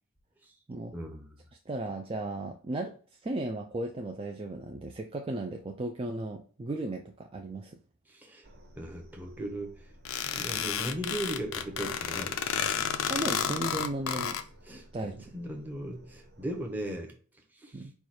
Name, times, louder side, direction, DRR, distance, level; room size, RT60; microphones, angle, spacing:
voice 1, 0.9-1.2 8.1-8.5 8.8-9.8 10.3-12.4 14.7-17.1 17.5-17.9, right 1 dB, 10° right, 0.7 m, -38 dB
voice 2, 1.7-2.9 3.2-7.8 13.1-14.4 14.7-15.2 17.7-17.9, right 2 dB, 25° right, 0.3 m, -35 dB
sound 1, 8.4-16.9, equal, 50° right, 0.9 m, -54 dB
sound 2, 10.1-14.4, left 8 dB, 65° left, 0.4 m, -31 dB
4.7 x 2.3 x 4.1 m
head